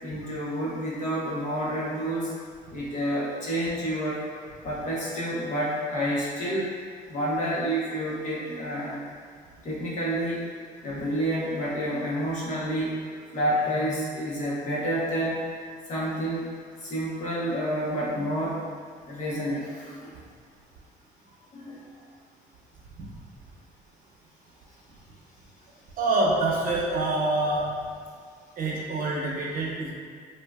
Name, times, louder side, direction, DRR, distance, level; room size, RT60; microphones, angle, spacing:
voice 1, 0.0-2.3 2.7-4.2 4.6-6.7 7.1-9.0 9.6-10.4 10.8-13.0 13.3-15.4 15.9-16.5 16.8-18.6 19.1-20.1 21.5-21.8, equal, 45° left, -6 dB, 0.9 m, -29 dB
voice 2, 26.0-27.7 28.6-29.9, right 2 dB, 60° right, -3 dB, 0.7 m, -26 dB
3.5 x 2.5 x 2.3 m, 2.1 s
cardioid pair, 110°, 17 cm